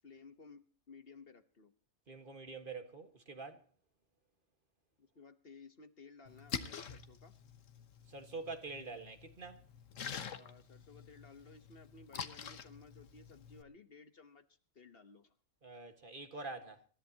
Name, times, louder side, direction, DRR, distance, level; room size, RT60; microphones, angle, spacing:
voice 1, 0.0-1.7 5.0-7.3 10.3-15.3, left 4 dB, 50° left, 1.3 m, -57 dB
voice 2, 2.1-3.7 8.1-9.6 15.6-16.9, right 3 dB, 45° right, 1.8 m, -46 dB
Splash splatter, 6.3-13.6, left 7 dB, 80° left, 1.5 m, -47 dB
26.5 x 13.5 x 2.9 m
omnidirectional pair, 1.3 m